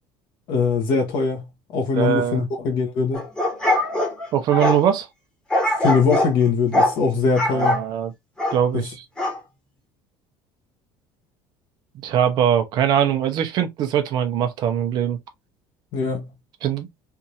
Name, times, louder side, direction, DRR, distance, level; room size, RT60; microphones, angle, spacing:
voice 1, 0.5-1.4 1.7-3.2 5.8-7.8 8.7-8.8 15.9-16.3, left 5 dB, 50° left, 1.2 m, -21 dB
voice 2, 2.0-2.4 4.3-5.1 7.5-8.1 8.5-9.0 11.9-15.2 16.6-16.9, right 9 dB, 50° right, 0.8 m, -21 dB
sound 1, 3.1-4.8 5.5-6.3 6.7-7.0 7.3-7.8 8.4-8.6 9.2-9.4, left 1 dB, 10° left, 1.4 m, -22 dB
3.5 x 2.7 x 2.9 m
cardioid pair, 160°, 10 cm